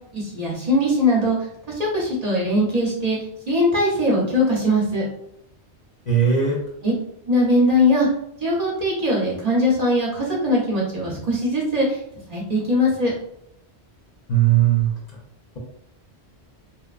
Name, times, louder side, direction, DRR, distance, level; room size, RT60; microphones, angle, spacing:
voice 1, 0.1-1.5 1.8-3.2 3.5-5.0 6.8-6.9 7.3-8.1 8.4-12.0 12.3-13.1, left 1 dB, 45° right, -5 dB, 0.7 m, -20 dB
voice 2, 6.1-6.6 14.3-14.9, right 9 dB, 50° left, -4 dB, 0.6 m, -18 dB
2.9 x 2.1 x 2.3 m, 0.76 s
omnidirectional pair, 1.1 m